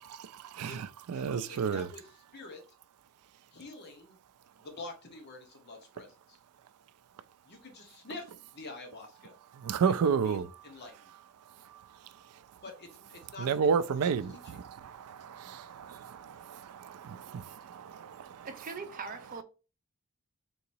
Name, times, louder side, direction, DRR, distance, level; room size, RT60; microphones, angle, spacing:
voice 1, 0.0-1.9 9.5-10.5 11.6-12.1 13.4-18.5, right 6 dB, 75° right, 0.4 m, -32 dB
voice 2, 1.1-2.1 2.3-2.6 3.5-4.2 4.6-6.4 7.4-9.3 9.9-11.1 12.6-14.6, left 3 dB, 50° left, 1.1 m, -47 dB
voice 3, 18.4-19.4, right 4 dB, 40° right, 0.7 m, -41 dB
3.8 x 2.9 x 2.6 m
head